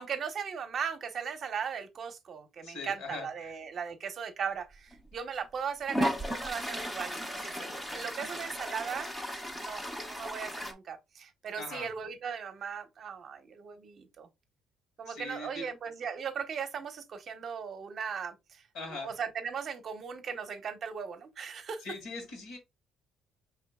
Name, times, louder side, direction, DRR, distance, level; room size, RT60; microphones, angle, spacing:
voice 1, 0.0-9.1 9.5-14.3 15.0-18.7 19.0-21.9, right 6 dB, 40° right, 0.8 m, -38 dB
voice 2, 2.6-3.5 11.6-11.9 15.1-15.7 18.7-19.1 21.8-22.6, left 3 dB, 75° left, 2.2 m, -41 dB
Toilet flush, 4.9-5.0 5.9-10.7, equal, 5° left, 0.6 m, -35 dB
5.0 x 3.6 x 2.2 m
cardioid pair, 150°, 0 cm